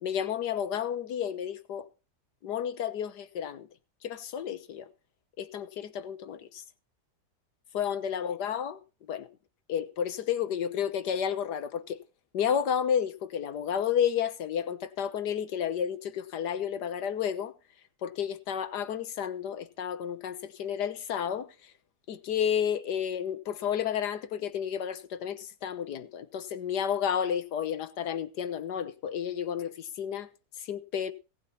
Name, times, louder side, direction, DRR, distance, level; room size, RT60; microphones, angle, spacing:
voice 1, 0.0-1.9 2.4-3.7 4.0-4.9 5.4-6.6 7.7-8.8 9.1-9.3 9.7-12.0 12.3-17.5 18.0-21.5 22.1-30.3 30.7-31.1, left 8 dB, 75° left, 1.6 m, -31 dB
17.5 x 8.3 x 5.7 m
omnidirectional pair, 1.8 m